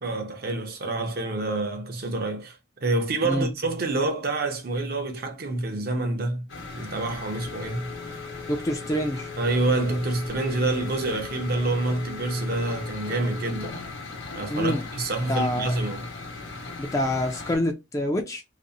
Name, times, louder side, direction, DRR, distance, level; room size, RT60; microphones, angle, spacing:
voice 1, 0.0-6.5 6.7-7.9 9.4-13.8 14.4-16.0, right 2 dB, 50° right, 0.6 m, -27 dB
sound 1, 6.5-17.6, left 3 dB, 75° left, 0.8 m, -38 dB
Telephone, 7.2-14.0, left 7 dB, 75° right, 1.0 m, -43 dB
voice 2, 8.5-9.3 14.5-14.8 15.3-15.8 16.8-18.4, left 1 dB, 15° left, 0.3 m, -26 dB
2.6 x 2.0 x 2.6 m
head